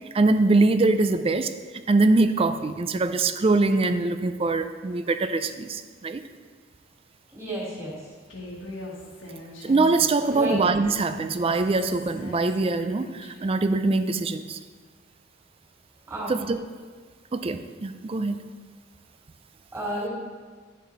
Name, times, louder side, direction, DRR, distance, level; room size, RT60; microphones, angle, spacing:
voice 1, 0.1-6.2 9.6-14.6 16.3-16.6 17.3-18.4, right 3 dB, 30° right, 10 dB, 0.4 m, -23 dB
voice 2, 7.3-7.9 10.3-10.6 16.1-16.3 19.7-20.1, right 1 dB, 15° right, -5 dB, 2.6 m, -31 dB
Human voice, 8.3-13.5, left 1 dB, 90° left, 1.8 m, -41 dB
10.5 x 6.5 x 4.0 m, 1.5 s
head